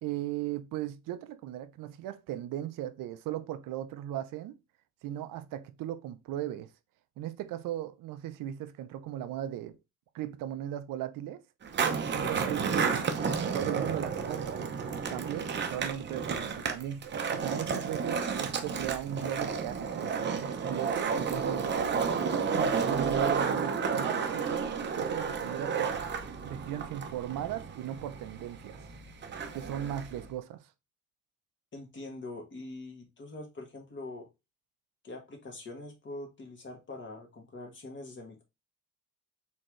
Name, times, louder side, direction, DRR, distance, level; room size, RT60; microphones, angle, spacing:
voice 1, 0.0-4.6 5.0-6.7 7.2-9.8 10.1-11.4 12.1-12.6 12.9-13.0 13.5-21.7 22.5-26.0 26.4-28.8 29.5-30.7, right 11 dB, 80° right, 0.6 m, -37 dB
Skateboard, 11.6-30.3, right 6 dB, 35° right, 0.7 m, -32 dB
voice 2, 12.2-13.1 31.7-34.3 35.0-38.4, left 2 dB, 35° left, 1.5 m, -43 dB
4.4 x 3.7 x 3.1 m
cardioid pair, 140°, 33 cm